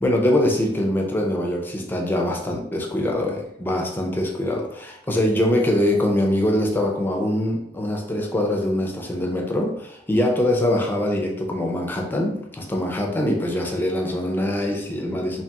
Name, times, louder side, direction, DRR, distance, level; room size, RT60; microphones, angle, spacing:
voice 1, 0.0-15.4, left 1 dB, 10° left, 1 dB, 0.4 m, -23 dB
2.8 x 2.8 x 2.3 m, 0.75 s
head